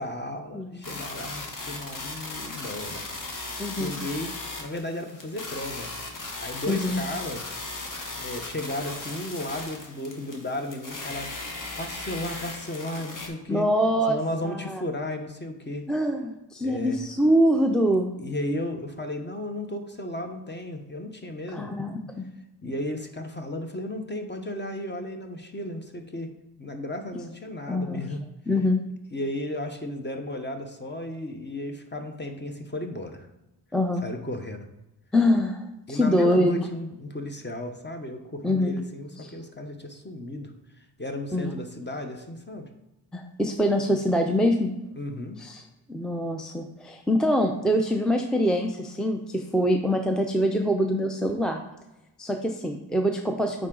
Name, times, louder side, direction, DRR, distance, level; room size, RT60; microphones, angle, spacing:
voice 1, 0.0-3.1 3.7-5.9 6.4-7.6 8.1-11.3 11.8-13.7 14.1-15.9 16.6-17.0 18.2-21.7 22.6-26.3 26.6-28.2 29.1-33.3 34.0-34.6 35.9-40.5 41.0-42.7 45.0-45.4, left 1 dB, 25° left, 5 dB, 0.9 m, -34 dB
sound 1, 0.8-13.3, left 2 dB, 45° left, 1.3 m, -37 dB
voice 2, 3.6-4.0 6.7-7.0 13.5-14.2 14.4-14.8 15.9-18.1 21.5-22.3 27.7-28.0 28.5-28.8 33.7-34.0 35.1-36.7 38.4-38.8 39.2-39.3 41.3-41.5 43.1-44.7 45.4-45.6 45.9-51.6 52.2-53.7, equal, ahead, 4 dB, 0.5 m, -24 dB
9.0 x 3.8 x 3.8 m, 0.95 s
wide cardioid pair, 85°, 44 cm